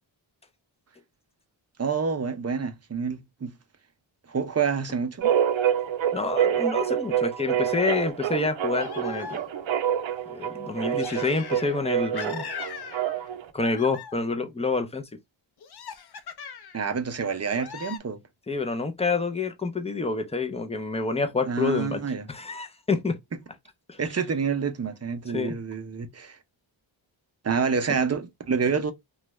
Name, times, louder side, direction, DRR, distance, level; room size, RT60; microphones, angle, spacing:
voice 1, 1.8-3.5 4.3-5.3 16.7-18.2 21.4-22.2 24.0-26.4 27.4-28.9, right 5 dB, 35° right, 0.5 m, -28 dB
sound 1, 5.2-13.4, right 9 dB, 75° right, 0.6 m, -27 dB
voice 2, 6.1-9.3 10.3-12.4 13.5-15.0 18.5-22.0 22.3-23.2 23.9-24.0 25.3-25.6, left 4 dB, 15° left, 0.5 m, -28 dB
sound 2, 8.8-9.7 11.0-11.8 12.1-13.3 13.6-14.4 15.6-16.9 17.5-18.0, left 7 dB, 55° left, 0.6 m, -40 dB
3.1 x 2.3 x 2.9 m
wide cardioid pair, 110°, 47 cm